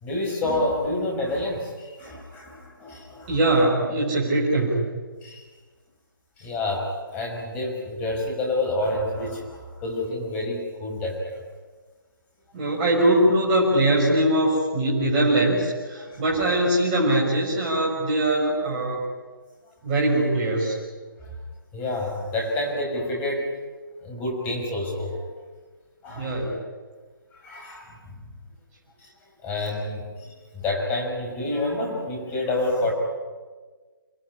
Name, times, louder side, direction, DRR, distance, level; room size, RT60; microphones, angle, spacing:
voice 1, 0.0-3.4 5.2-5.4 6.4-11.2 16.1-16.2 21.7-23.5 24.0-25.2 26.0-26.3 27.4-28.2 29.4-30.1 30.5-32.9, left 2 dB, 15° left, 0 dB, 6.1 m, -28 dB
voice 2, 3.3-4.9 12.5-19.0 19.8-20.8 26.1-26.6, right 1 dB, 20° right, -4 dB, 6.0 m, -22 dB
27.5 x 20.0 x 9.9 m, 1.4 s
figure-of-eight pair, 145°, 12 cm